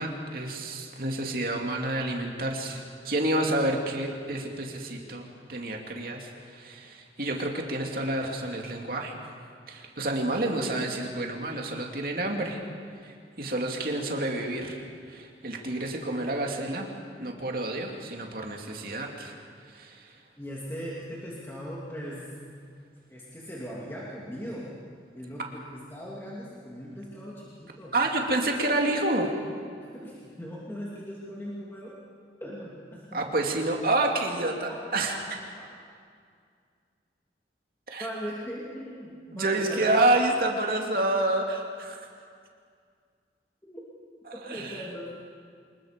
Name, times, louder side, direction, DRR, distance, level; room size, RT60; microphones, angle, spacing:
voice 1, 0.0-9.3 9.7-12.6 13.0-14.8 15.1-16.9 17.2-19.3 19.7-20.1 27.9-29.3 33.1-35.4 37.9-38.1 39.3-42.1 44.5-44.8, right 2 dB, 55° right, 1 dB, 2.5 m, -29 dB
voice 2, 20.4-22.3 23.1-24.7 25.1-27.9 29.8-32.0 32.4-33.2 34.7-34.8 38.0-39.8 43.6-43.8 44.5-45.1, equal, 15° left, -6 dB, 2.6 m, -39 dB
25.5 x 21.0 x 5.2 m, 2.2 s
head